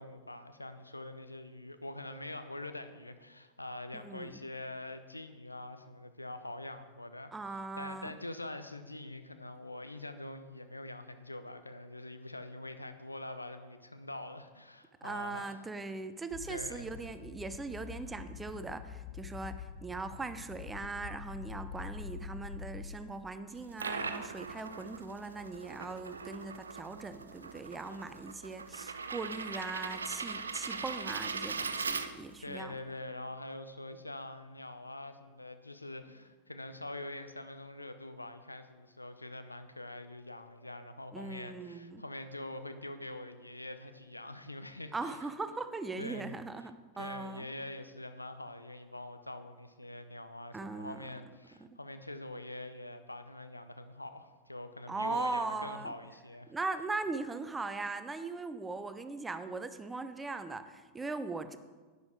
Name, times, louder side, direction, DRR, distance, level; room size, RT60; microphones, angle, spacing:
voice 1, 0.0-15.6 16.5-16.9 27.9-28.0 32.4-45.2 46.0-46.3 46.6-46.7 47.0-56.5, left 2 dB, 85° left, 9 dB, 0.7 m, -44 dB
voice 2, 3.9-4.4 7.3-8.1 15.0-32.7 41.1-42.0 44.9-47.5 50.5-51.1 54.9-55.9 56.5-61.6, right 3 dB, 10° right, 10 dB, 0.7 m, -39 dB
sound 1, 16.3-23.0, left 6 dB, 35° left, 1.0 m, -45 dB
sound 2, 23.5-32.5, right 4 dB, 75° right, 0.6 m, -40 dB
10.5 x 9.5 x 4.6 m, 1.4 s
figure-of-eight pair, 90°, 0 cm